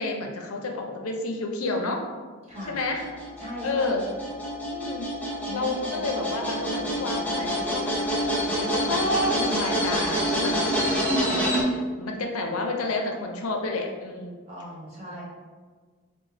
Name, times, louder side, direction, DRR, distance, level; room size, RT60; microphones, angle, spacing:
voice 1, 0.0-2.0 2.7-3.0 3.6-4.0 4.7-5.1 5.5-8.0 8.5-14.4 15.1-15.2, left 2 dB, 85° left, 2 dB, 0.5 m, -30 dB
voice 2, 2.4-2.8 3.4-3.9 5.5-6.0 14.5-15.2, equal, 30° right, -6 dB, 1.0 m, -38 dB
sound 1, 2.6-11.6, equal, 5° left, 0.6 m, -27 dB
5.0 x 2.0 x 3.2 m, 1.4 s
head